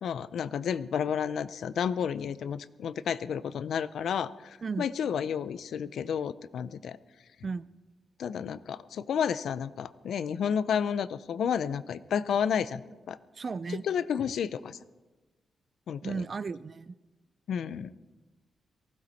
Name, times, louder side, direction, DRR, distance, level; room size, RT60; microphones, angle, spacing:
voice 1, 0.0-7.0 8.2-13.2 13.7-14.8 15.9-16.3 17.5-17.9, left 7 dB, 75° left, 15 dB, 0.5 m, -31 dB
voice 2, 13.4-13.8 16.0-16.9, right 4 dB, 40° right, 17 dB, 0.4 m, -34 dB
19.0 x 15.5 x 4.2 m, 1.2 s
cardioid pair, 115°, 0 cm